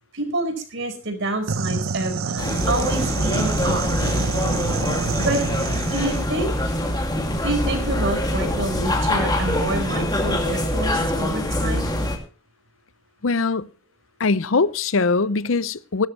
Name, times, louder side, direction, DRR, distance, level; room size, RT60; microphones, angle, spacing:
voice 1, 0.1-4.0 5.2-5.4 5.9-6.8 7.4-11.9, right 2 dB, 65° right, 4.7 m, -27 dB
sound 1, 1.5-6.3, right 4 dB, 85° right, 0.8 m, -27 dB
sound 2, 2.4-12.2, left 1 dB, 20° left, 2.5 m, -24 dB
voice 2, 13.2-13.7 14.2-16.1, left 4 dB, 70° left, 0.7 m, -21 dB
17.0 x 12.5 x 3.2 m
head